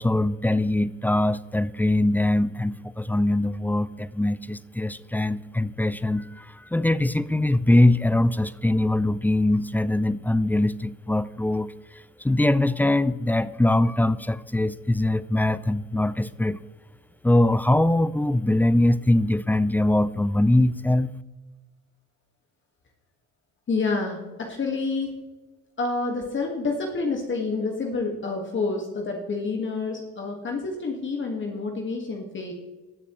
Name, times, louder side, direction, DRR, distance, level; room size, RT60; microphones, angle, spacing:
voice 1, 0.0-11.7 12.2-16.6 17.2-21.1, left 1 dB, 5° left, 17 dB, 0.4 m, -22 dB
voice 2, 23.7-25.2 25.8-32.5, left 3 dB, 40° left, 1 dB, 1.8 m, -28 dB
19.5 x 6.9 x 3.1 m, 1.2 s
cardioid pair, 95°, 31 cm